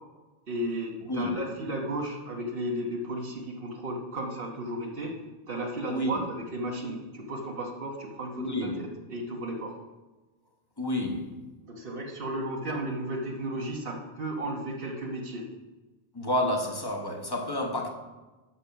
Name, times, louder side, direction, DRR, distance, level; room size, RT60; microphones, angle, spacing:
voice 1, 0.5-5.2 5.5-8.7 9.1-9.7 11.7-15.5, right 1 dB, 65° right, 1 dB, 1.4 m, -34 dB
voice 2, 5.9-6.2 8.4-8.8 10.8-11.3 16.1-17.9, left 1 dB, 25° left, 2 dB, 1.1 m, -29 dB
7.0 x 5.7 x 5.7 m, 1.2 s
omnidirectional pair, 1.0 m